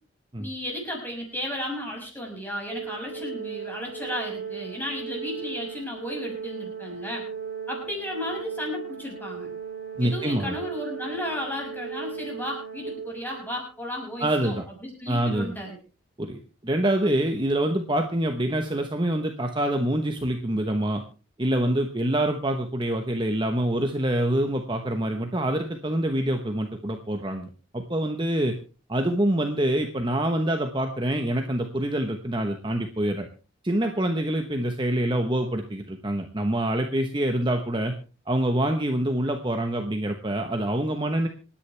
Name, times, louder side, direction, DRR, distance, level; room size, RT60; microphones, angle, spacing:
voice 1, 0.4-7.3 7.7-9.5 10.0-15.8, left 1 dB, 10° left, -1 dB, 6.3 m, -34 dB
Organ, 2.7-13.6, right 6 dB, 50° right, 3.7 m, -37 dB
voice 2, 10.0-10.5 14.2-14.6 15.1-15.6 16.2-21.0 21.4-28.6 28.9-33.3 33.6-37.9 38.3-41.3, right 1 dB, 25° right, 4 dB, 1.0 m, -26 dB
27.0 x 10.0 x 3.4 m, 0.35 s
head